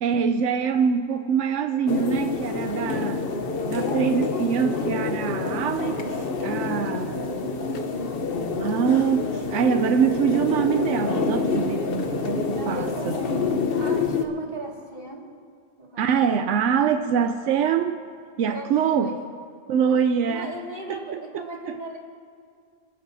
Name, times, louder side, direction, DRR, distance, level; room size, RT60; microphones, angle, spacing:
voice 1, 0.0-3.2 3.7-6.1 6.4-7.2 8.6-13.2 16.0-18.0 18.4-19.2 19.7-20.5 20.9-21.8, right 7 dB, 85° right, 8 dB, 0.9 m, -24 dB
sound 1, 1.9-14.3, left 4 dB, 55° left, 1.0 m, -27 dB
voice 2, 12.5-13.5 13.8-15.3 15.8-16.1 16.4-16.6 18.5-19.3 20.2-22.0, right 2 dB, 40° right, -2 dB, 2.2 m, -36 dB
28.5 x 10.5 x 2.7 m, 2.3 s
omnidirectional pair, 1.2 m